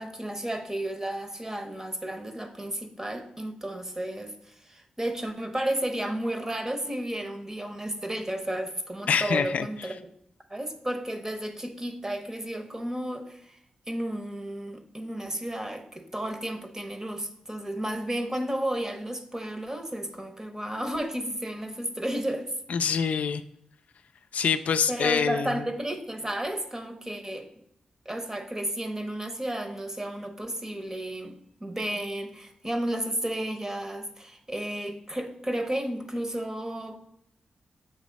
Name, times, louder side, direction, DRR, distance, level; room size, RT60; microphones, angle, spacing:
voice 1, 0.0-10.1 10.5-13.6 13.9-22.5 24.9-27.5 28.0-36.9, right 1 dB, 20° right, 7 dB, 0.9 m, -33 dB
voice 2, 9.1-9.7 22.7-23.4 24.3-25.6, left 6 dB, 75° left, 9 dB, 0.3 m, -25 dB
7.5 x 3.1 x 5.2 m, 0.77 s
cardioid pair, 60°, 2 cm